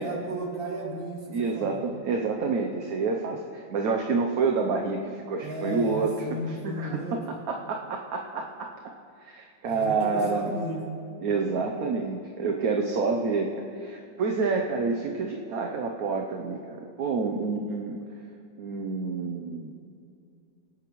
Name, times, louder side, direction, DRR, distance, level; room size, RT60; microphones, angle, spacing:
voice 1, 0.0-2.0 5.4-7.3 9.6-10.9, right 1 dB, 30° right, -2 dB, 2.2 m, -34 dB
voice 2, 1.3-6.1 6.6-7.0 7.5-8.7 9.2-10.5 11.2-18.0 18.6-19.7, right 4 dB, 60° right, 2 dB, 1.1 m, -28 dB
25.0 x 9.0 x 3.1 m, 2.4 s
omnidirectional pair, 2.0 m